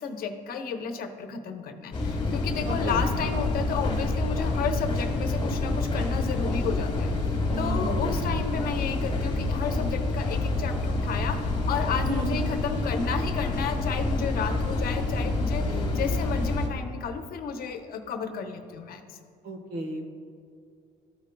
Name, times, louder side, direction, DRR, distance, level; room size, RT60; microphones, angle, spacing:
voice 1, 0.0-7.1 7.6-19.2, left 6 dB, 60° left, 6 dB, 0.8 m, -32 dB
sound 1, 1.9-16.7, left 2 dB, 30° left, 1.3 m, -27 dB
voice 2, 2.7-3.0 7.5-8.3 12.1-12.4 15.6-16.2 19.4-20.0, right 1 dB, 60° right, 4 dB, 1.2 m, -34 dB
13.5 x 5.1 x 2.2 m, 2.4 s
cardioid pair, 110°, 17 cm